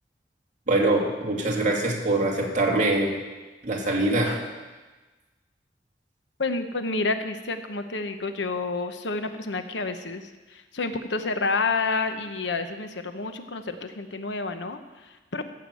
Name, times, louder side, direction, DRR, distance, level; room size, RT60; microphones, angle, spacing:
voice 1, 0.7-3.2 3.6-4.4, right 2 dB, 45° right, -1 dB, 2.3 m, -23 dB
voice 2, 6.4-15.5, left 3 dB, 90° left, 8 dB, 1.0 m, -29 dB
15.0 x 6.7 x 7.7 m, 1.2 s
head